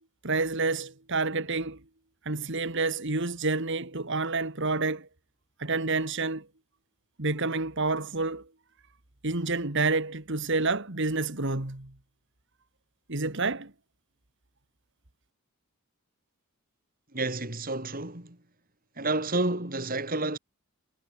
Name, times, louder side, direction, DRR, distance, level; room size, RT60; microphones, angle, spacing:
voice 1, 0.2-1.8 2.3-5.1 5.6-6.5 7.2-8.5 9.2-11.9 13.1-13.7, right 3 dB, 55° right, 2.3 m, -28 dB
voice 2, 17.1-18.4 19.0-20.4, right 2 dB, 40° right, 5.4 m, -30 dB
head